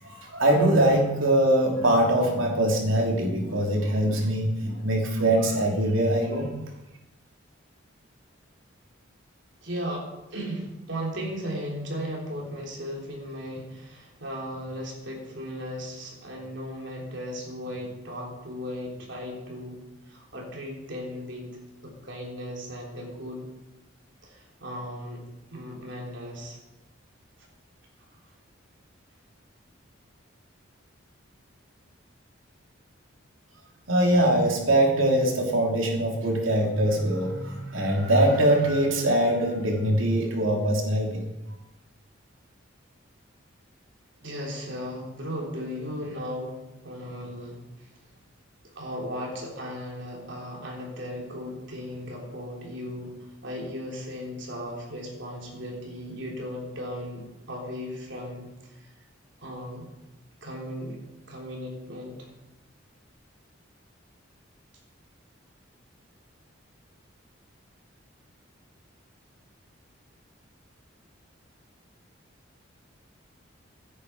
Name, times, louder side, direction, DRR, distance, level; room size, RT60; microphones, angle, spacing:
voice 1, 0.0-6.6 33.9-41.2, right 1 dB, 80° right, 1 dB, 3.0 m, -23 dB
voice 2, 9.6-19.8 20.1-21.5 21.8-23.4 24.2-25.2 25.5-26.6 28.0-28.1 44.2-47.9 48.6-58.9 59.4-59.9 60.4-61.0 61.3-62.3, equal, 65° right, -1 dB, 3.5 m, -36 dB
16.5 x 9.7 x 4.7 m, 0.97 s
head